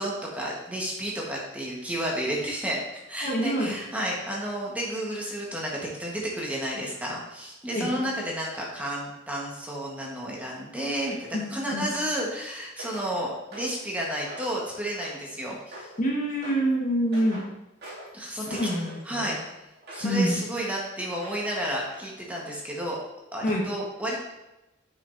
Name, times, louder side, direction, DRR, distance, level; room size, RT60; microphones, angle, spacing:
voice 1, 0.0-2.8 3.1-15.9 18.1-18.6 19.0-19.4 19.9-23.0 23.3-24.2, equal, 5° right, -3 dB, 1.1 m, -31 dB
voice 2, 3.2-3.7 7.7-7.9 11.3-11.8 16.0-17.4 18.4-19.3 20.0-20.4 23.4-23.6, equal, 40° left, -1 dB, 1.2 m, -26 dB
sound 1, 12.8-13.1 13.5-13.8 14.2-14.6 15.0-15.3 15.7-16.0 16.4-16.7 17.1-17.5 17.8-18.1 18.5-20.2 20.5-20.8 21.2-21.6 21.9-22.1, right 1 dB, 55° right, 2.2 m, -43 dB
8.0 x 5.9 x 2.5 m, 0.96 s
head